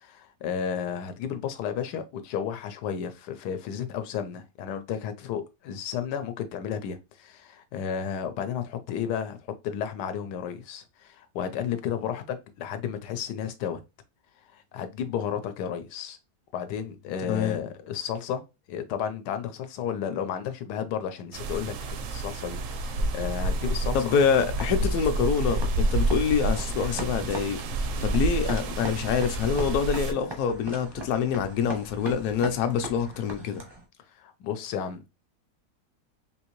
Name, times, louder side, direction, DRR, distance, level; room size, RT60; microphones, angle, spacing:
voice 1, 0.0-9.4 9.6-13.8 14.5-16.2 16.5-18.4 18.7-24.1 34.2-35.1, left 8 dB, 90° left, 1.2 m, -33 dB
voice 2, 17.3-17.6 23.9-27.6 28.0-33.6, left 6 dB, 70° left, 0.9 m, -26 dB
sound 1, 21.3-30.1, right 2 dB, 70° right, 0.8 m, -29 dB
sound 2, 24.6-33.9, right 1 dB, 30° right, 0.4 m, -41 dB
3.7 x 2.7 x 2.9 m
omnidirectional pair, 1.7 m